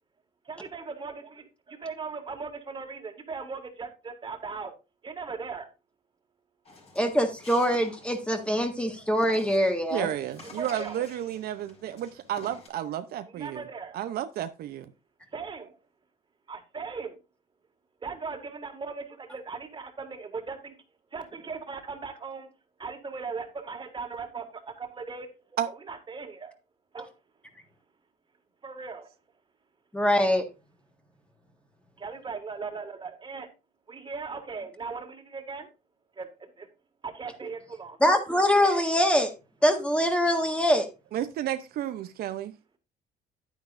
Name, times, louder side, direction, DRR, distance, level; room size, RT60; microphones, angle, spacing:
voice 1, 0.5-4.7 5.0-5.7 10.4-11.0 13.3-14.0 15.3-15.7 16.5-17.2 18.0-20.8 21.1-22.5 22.8-25.3 25.9-26.5 26.9-27.1 28.6-29.0 32.0-33.5 33.9-35.7 36.1-36.7 37.0-38.0, right 4 dB, 30° right, 1.9 m, -38 dB
sound 1, 6.6-12.7, left 3 dB, 35° left, 4.8 m, -50 dB
voice 2, 7.0-10.1 29.9-30.5 38.0-39.3 39.6-40.9, equal, 5° left, 1.5 m, -23 dB
voice 3, 9.9-13.6 13.9-14.9 25.6-25.7 41.1-42.5, right 11 dB, 65° right, 0.6 m, -32 dB
10.0 x 9.3 x 2.5 m
cardioid pair, 110°, 17 cm